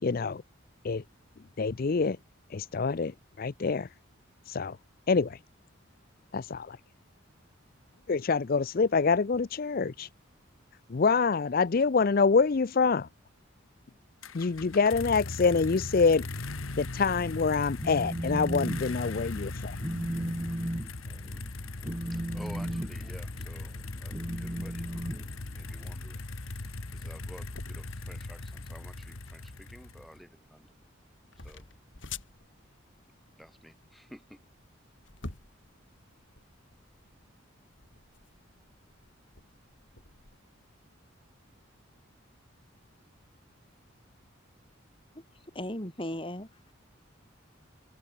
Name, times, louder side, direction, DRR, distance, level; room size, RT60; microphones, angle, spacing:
voice 1, 0.0-0.4 0.8-1.0 1.6-2.2 2.5-3.9 4.5-4.8 5.1-5.4 6.3-6.8 8.1-10.1 10.9-13.1 14.3-16.3 16.8-19.8, left 4 dB, 45° left, 0.5 m, -26 dB
Harley Davidson Engine Start, 14.2-30.2, left 2 dB, 85° left, 1.5 m, -39 dB
Telephone, 17.8-18.8 19.2-19.4 19.8-25.9, right 1 dB, 15° right, 0.8 m, -35 dB
voice 2, 22.0-24.9 25.5-30.8 31.3-31.7 33.4-34.4, equal, ahead, 4.9 m, -52 dB
sound 1, 24.6-40.4, left 4 dB, 65° left, 2.9 m, -50 dB
voice 3, 45.5-46.7, left 1 dB, 25° left, 4.3 m, -36 dB
open air
head